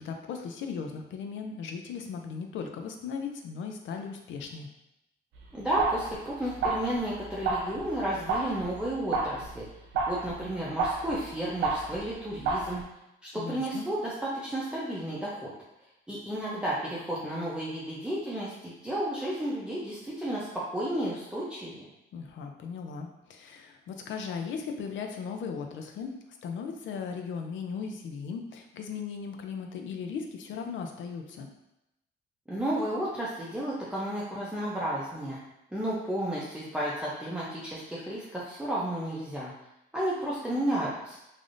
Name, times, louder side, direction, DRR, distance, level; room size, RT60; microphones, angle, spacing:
voice 1, 0.0-4.7 13.3-13.8 22.1-26.1 26.4-31.5, left 6 dB, 70° left, 4 dB, 0.5 m, -37 dB
sound 1, 5.3-12.8, right 3 dB, 80° right, 0.7 m, -32 dB
voice 2, 5.5-9.6 10.1-12.8 13.2-15.5 16.1-21.9 32.5-35.4 35.7-39.5 39.9-41.2, right 1 dB, 5° right, -8 dB, 0.6 m, -32 dB
3.3 x 2.5 x 2.5 m, 0.90 s
cardioid pair, 90°, 20 cm